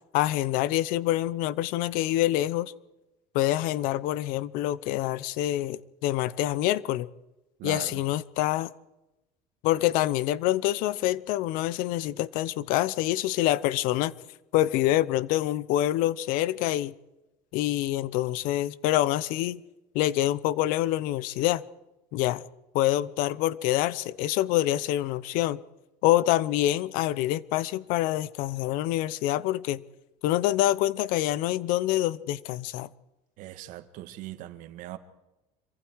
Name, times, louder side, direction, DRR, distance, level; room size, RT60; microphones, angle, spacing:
voice 1, 0.1-2.7 3.3-7.1 7.6-8.7 9.6-14.1 14.5-16.9 17.5-19.6 19.9-21.6 22.1-22.4 22.7-25.6 26.0-29.8 30.2-32.9, left 14 dB, 70° left, 0.9 m, -26 dB
voice 2, 7.6-8.0 33.4-35.0, right 14 dB, 60° right, 1.9 m, -40 dB
26.5 x 24.0 x 4.8 m
cardioid pair, 160°, 15 cm